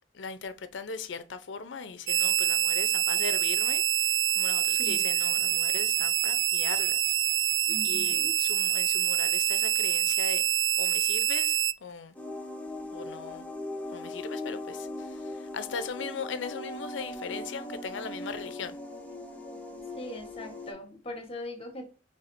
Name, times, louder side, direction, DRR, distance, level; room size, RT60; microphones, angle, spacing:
voice 1, 0.1-3.8 4.1-7.1 7.4-7.5 7.8-10.5 10.8-12.1 12.9-13.4 13.9-18.8, left 5 dB, 70° left, 0.6 m, -39 dB
sound 1, 2.1-11.7, right 12 dB, 85° right, 0.3 m, -26 dB
voice 2, 4.8-5.1 7.7-8.3 20.0-21.9, left 1 dB, 30° left, 1.2 m, -40 dB
sound 2, 12.1-20.7, left 1 dB, 10° left, 0.7 m, -39 dB
5.7 x 3.4 x 2.6 m
head